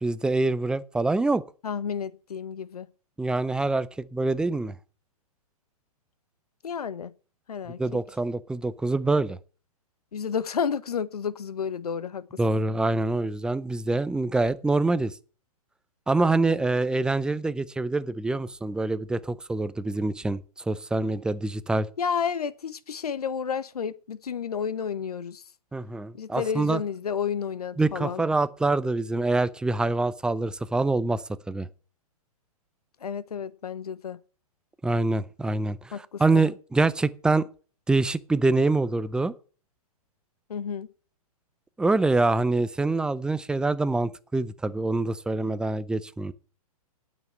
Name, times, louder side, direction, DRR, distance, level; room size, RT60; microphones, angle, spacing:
voice 1, 0.0-1.4 3.2-4.7 7.8-9.4 12.4-15.1 16.1-20.4 20.7-21.9 25.7-26.8 27.8-31.2 31.5-31.7 34.8-37.5 37.9-39.3 41.8-46.3, right 2 dB, 5° right, 0.5 m, -25 dB
voice 2, 1.6-2.9 6.6-7.1 7.5-7.8 10.1-12.4 22.0-25.4 26.1-28.2 33.0-34.2 35.9-36.5 40.5-40.9, left 7 dB, 80° left, 1.1 m, -31 dB
9.4 x 7.4 x 8.5 m
hypercardioid pair, 125°, 19 cm